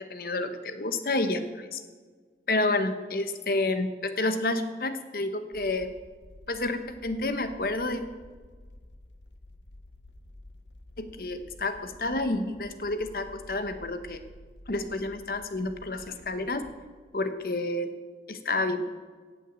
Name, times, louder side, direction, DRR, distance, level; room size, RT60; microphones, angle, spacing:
voice 1, 0.0-1.8 2.5-5.9 6.5-8.0 11.0-14.2 14.7-16.6 17.1-17.9 18.3-18.9, left 2 dB, 55° left, 9 dB, 1.0 m, -29 dB
sound 1, 5.5-16.8, left 1 dB, 90° left, 0.9 m, -51 dB
17.0 x 6.3 x 7.6 m, 1.5 s
head